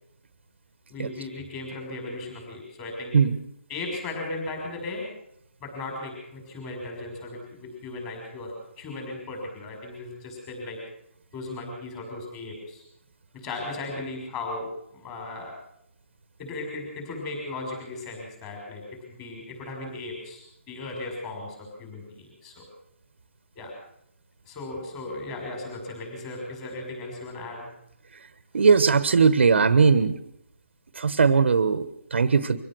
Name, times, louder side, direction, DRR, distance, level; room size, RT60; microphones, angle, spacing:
voice 1, 0.9-3.2 3.7-5.1 5.6-10.8 11.3-12.8 13.3-15.6 16.4-22.7 23.6-23.8 24.5-27.7, left 2 dB, 15° left, 1 dB, 6.3 m, -36 dB
voice 2, 28.5-30.2 30.9-32.6, right 5 dB, 60° right, 13 dB, 1.3 m, -19 dB
24.0 x 17.0 x 6.4 m, 0.72 s
hypercardioid pair, 170°, 7 cm